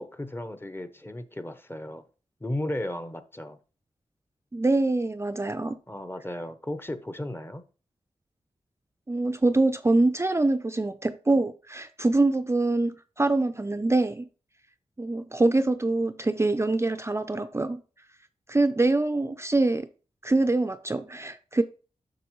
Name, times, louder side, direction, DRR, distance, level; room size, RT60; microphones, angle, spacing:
voice 1, 0.0-2.0 2.4-3.6 5.9-7.6, left 1 dB, 20° left, 0.8 m, -35 dB
voice 2, 4.5-5.8 9.1-14.3 15.0-17.8 18.5-19.9 20.2-21.6, right 2 dB, 20° right, 0.5 m, -24 dB
7.7 x 5.6 x 3.1 m
wide cardioid pair, 65°, 12 cm